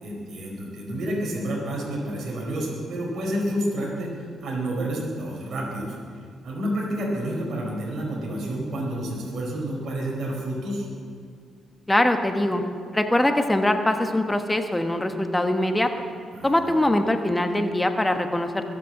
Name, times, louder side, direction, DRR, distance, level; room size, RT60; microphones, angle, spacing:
voice 1, 0.0-4.1 4.4-5.9 6.4-10.9 16.3-16.8, right 1 dB, 65° right, -3 dB, 4.5 m, -29 dB
voice 2, 11.9-12.6 12.9-15.9 16.4-18.6, left 1 dB, 10° left, 6 dB, 1.4 m, -22 dB
22.0 x 7.7 x 7.7 m, 2.1 s
cardioid pair, 70°, 0 cm